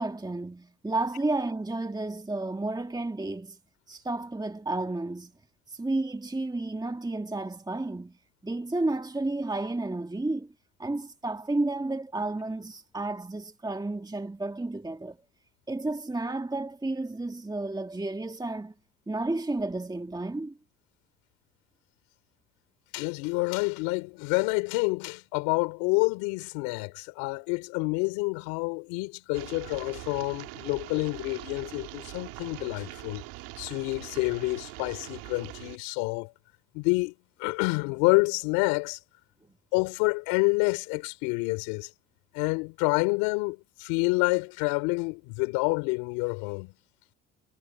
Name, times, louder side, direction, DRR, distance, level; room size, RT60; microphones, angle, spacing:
voice 1, 0.0-3.6 3.9-5.3 5.7-8.2 8.4-10.5 10.8-15.2 15.7-18.7 19.1-20.6, right 2 dB, 10° right, 1.7 m, -31 dB
voice 2, 22.9-33.2 33.6-36.3 36.7-37.1 37.4-39.0 39.7-41.9 42.3-46.7, left 29 dB, 80° left, 4.3 m, -28 dB
sound 1, 29.3-35.8, right 23 dB, 80° right, 2.4 m, -42 dB
hypercardioid pair, 55°, 33 cm